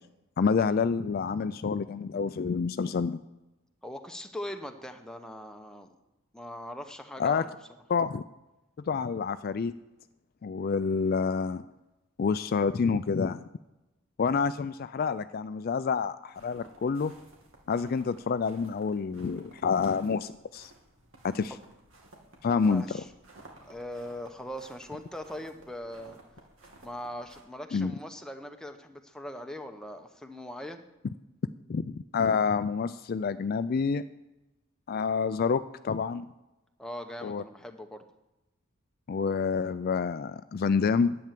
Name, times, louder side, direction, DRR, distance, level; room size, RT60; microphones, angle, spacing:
voice 1, 0.4-3.2 7.2-7.4 7.9-8.2 8.9-9.7 10.4-11.6 12.2-13.5 14.2-17.1 17.7-20.7 21.2-21.5 22.4-22.8 27.7-27.9 31.7-34.0 34.9-36.2 37.2-37.4 39.1-41.2, left 5 dB, 45° left, 13 dB, 0.3 m, -28 dB
voice 2, 3.8-5.9 6.3-7.6 22.6-23.1 23.7-26.2 26.8-30.8 36.8-38.1, equal, 5° left, 5 dB, 0.9 m, -40 dB
sound 1, 16.3-27.4, right 2 dB, 70° right, 2.6 m, -55 dB
11.0 x 8.8 x 7.5 m, 1.0 s
head